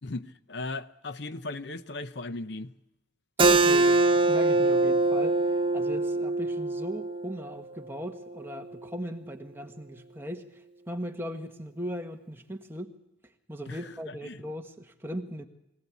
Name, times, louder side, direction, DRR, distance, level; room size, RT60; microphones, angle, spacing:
voice 1, 0.0-2.7 13.7-14.4, left 2 dB, 60° left, 0.8 m, -37 dB
Keyboard (musical), 3.4-8.6, right 2 dB, 25° right, 0.9 m, -24 dB
voice 2, 3.5-5.4 5.7-12.9 13.5-15.5, equal, 10° right, 1.4 m, -38 dB
24.0 x 17.5 x 8.3 m
head